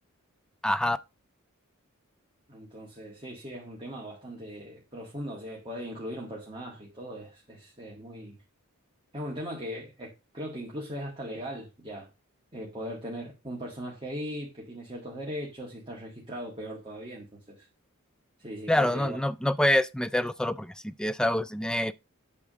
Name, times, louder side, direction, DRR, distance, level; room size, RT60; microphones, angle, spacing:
voice 1, 0.6-1.0 18.7-21.9, left 1 dB, 5° left, 0.3 m, -26 dB
voice 2, 2.5-8.4 9.1-12.1 12.5-17.7 18.4-19.2, equal, 25° right, 1.8 m, -39 dB
8.5 x 3.6 x 6.2 m
head